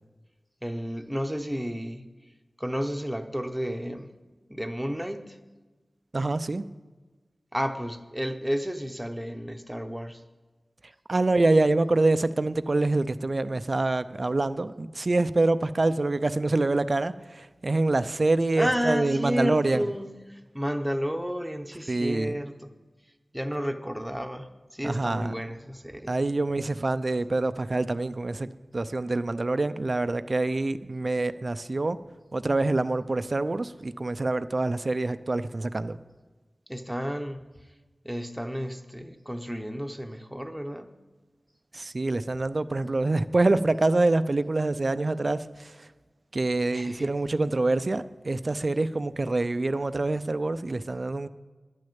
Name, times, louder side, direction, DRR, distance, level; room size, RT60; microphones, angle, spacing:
voice 1, 0.6-2.1 2.6-4.1 4.5-5.4 7.5-10.2 18.6-22.7 23.3-26.2 36.7-37.4 38.0-40.9 46.7-47.1, equal, 5° right, 0.9 m, -32 dB
voice 2, 6.1-6.6 11.1-19.8 21.9-22.4 24.8-25.3 26.1-32.0 32.3-36.0 41.7-45.9 46.3-51.3, right 2 dB, 50° right, 0.4 m, -26 dB
11.5 x 6.5 x 8.6 m
wide cardioid pair, 70°, 0 cm